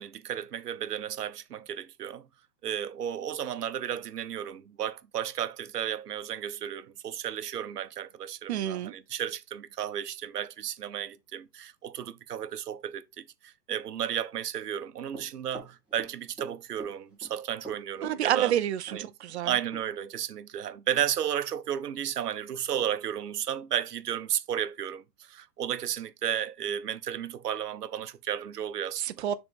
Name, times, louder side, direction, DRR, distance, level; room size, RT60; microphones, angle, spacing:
voice 1, 0.0-2.3 2.6-18.5 18.9-19.1 19.4-29.2, right 9 dB, 70° right, 1.0 m, -33 dB
voice 2, 8.5-8.9 18.0-19.5 29.0-29.4, right 11 dB, 45° right, 0.7 m, -28 dB
Run, 15.1-16.5 16.8-17.3 17.6-19.0 19.3-19.4 19.7-19.8, right 2 dB, ahead, 2.5 m, -44 dB
6.6 x 4.1 x 3.6 m
hypercardioid pair, 135°, 49 cm